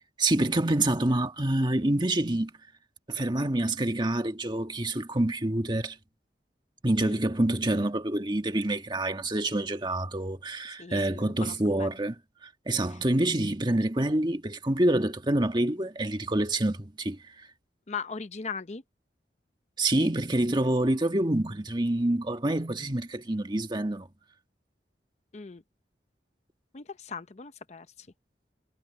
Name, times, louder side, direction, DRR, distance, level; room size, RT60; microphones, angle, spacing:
voice 1, 0.2-2.5 3.1-6.0 6.8-12.1 12.4-17.5 19.8-24.1, right 1 dB, 25° right, 1.5 m, -27 dB
voice 2, 10.8-12.0 12.9-13.0 17.9-18.8 25.3-25.6 26.7-28.1, left 5 dB, 40° left, 0.6 m, -39 dB
head